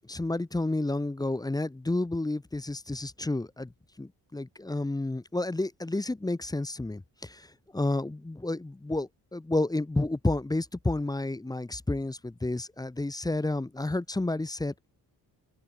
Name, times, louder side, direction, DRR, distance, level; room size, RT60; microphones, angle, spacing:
voice 1, 0.0-3.7 4.0-7.5 7.7-14.7, left 2 dB, 10° left, 0.7 m, -30 dB
open air
cardioid pair, 80°, 41 cm